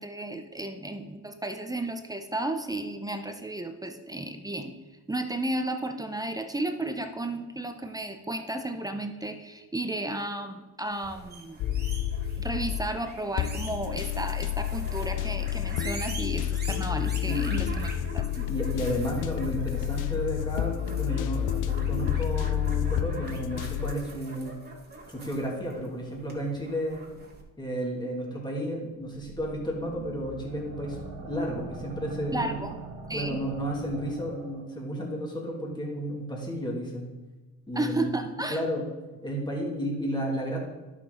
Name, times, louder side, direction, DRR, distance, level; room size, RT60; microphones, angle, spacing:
voice 1, 0.0-4.7 5.1-11.6 12.4-18.2 32.3-32.8 33.1-33.4 37.7-38.6, right 1 dB, 10° right, 6 dB, 0.7 m, -33 dB
sound 1, 10.9-27.4, right 2 dB, 30° right, 2.3 m, -44 dB
sound 2, 11.6-12.9 13.4-23.9, left 11 dB, 65° left, 0.6 m, -29 dB
voice 2, 18.4-24.5 25.1-27.0 27.6-32.6 33.1-37.1 37.7-38.1 38.5-38.8 39.2-40.6, equal, 10° left, -2 dB, 2.4 m, -32 dB
sound 3, 29.0-34.6, right 3 dB, 60° right, 2.0 m, -42 dB
11.5 x 6.3 x 3.8 m, 1.2 s
cardioid pair, 105°, 34 cm